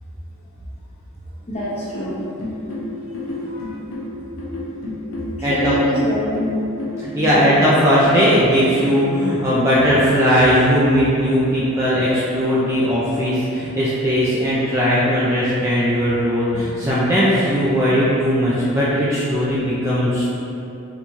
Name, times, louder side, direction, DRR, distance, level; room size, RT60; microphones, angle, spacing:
sound 1, 1.5-9.2, left 2 dB, 75° left, 0.6 m, -30 dB
voice 1, 1.5-2.2 3.5-3.7 5.4-6.5 7.2-7.7 14.5-14.6, equal, 30° left, -9 dB, 0.7 m, -25 dB
voice 2, 5.4-5.8 7.0-20.3, equal, 15° right, -9 dB, 0.3 m, -18 dB
4.0 x 2.3 x 3.0 m, 2.8 s
head